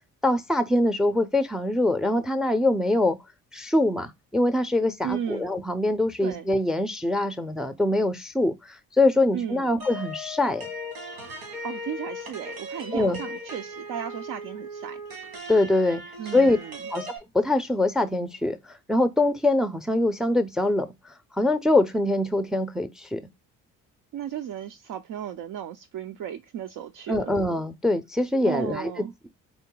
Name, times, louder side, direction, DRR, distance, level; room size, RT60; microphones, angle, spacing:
voice 1, 0.2-3.2 3.5-10.7 12.9-13.2 15.5-16.0 16.3-16.6 16.9-17.1 17.3-20.9 21.4-23.2 27.1-28.9, left 2 dB, ahead, 0.6 m, -23 dB
voice 2, 5.0-5.5 6.2-6.5 9.3-9.9 11.6-15.0 16.2-16.8 24.1-27.3 28.4-29.1, right 9 dB, 55° right, 0.6 m, -35 dB
sound 1, 9.8-17.2, left 1 dB, 85° right, 1.5 m, -38 dB
3.7 x 2.1 x 3.8 m
supercardioid pair, 65°, 38 cm